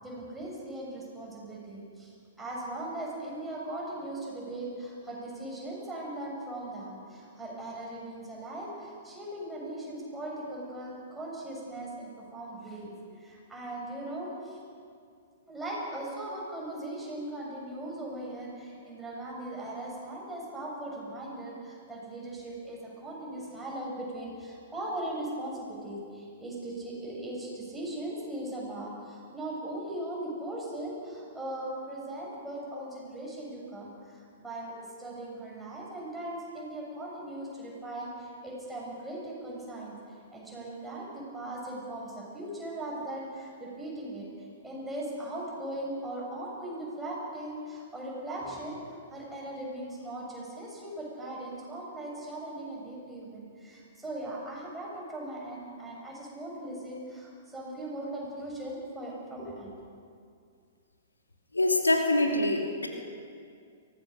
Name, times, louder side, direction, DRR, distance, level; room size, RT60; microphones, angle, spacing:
voice 1, 0.0-14.6 15.5-40.0 40.3-44.3 44.6-59.7, right 1 dB, 5° right, -4 dB, 7.3 m, -39 dB
voice 2, 61.5-62.9, left 2 dB, 85° left, 2 dB, 2.8 m, -25 dB
23.5 x 18.0 x 6.8 m, 2.3 s
figure-of-eight pair, 110°, 0 cm